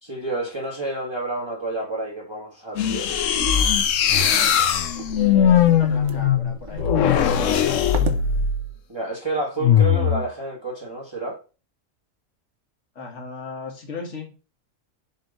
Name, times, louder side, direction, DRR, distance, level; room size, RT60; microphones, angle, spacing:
voice 1, 0.0-3.1 8.9-11.4, right 2 dB, 20° right, 1.4 m, -29 dB
sound 1, 2.8-8.7 9.6-10.2, left 9 dB, 85° left, 1.0 m, -20 dB
sound 2, 3.0-8.3, right 3 dB, 75° right, 1.2 m, -35 dB
voice 2, 5.1-8.0 13.0-14.3, left 5 dB, 65° left, 1.9 m, -35 dB
6.9 x 3.1 x 5.2 m
omnidirectional pair, 1.3 m